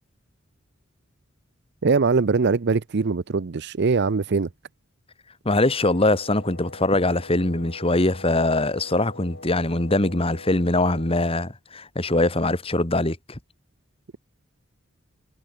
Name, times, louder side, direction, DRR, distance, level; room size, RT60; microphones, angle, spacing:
voice 1, 1.8-4.5, right 4 dB, 55° right, 0.6 m, -22 dB
voice 2, 5.5-13.4, left 2 dB, 25° left, 1.8 m, -22 dB
Wind instrument woodwind instrument, 5.9-11.2, left 2 dB, 60° left, 5.8 m, -44 dB
head